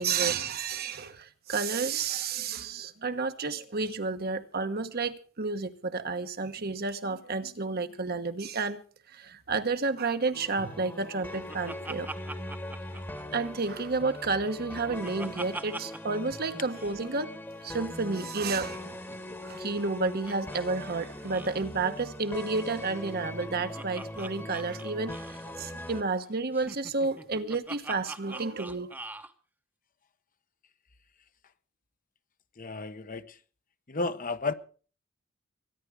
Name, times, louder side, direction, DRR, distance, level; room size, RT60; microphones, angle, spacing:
voice 1, 0.0-8.8 9.1-12.1 12.9-13.0 13.3-17.3 17.6-18.9 19.4-28.9, right 4 dB, 50° right, 1.1 m, -31 dB
sound 1, 10.3-26.0, left 1 dB, 10° left, 1.3 m, -41 dB
Laughter, 10.8-13.7 14.1-16.2 16.4-16.5 16.7-17.0 18.2-20.6 20.9-21.0 21.2-21.6 22.7-25.5 26.5-29.3, right 2 dB, 10° right, 0.9 m, -43 dB
voice 2, 32.6-33.4 33.9-34.5, left 3 dB, 40° left, 0.9 m, -32 dB
23.5 x 10.5 x 4.8 m
head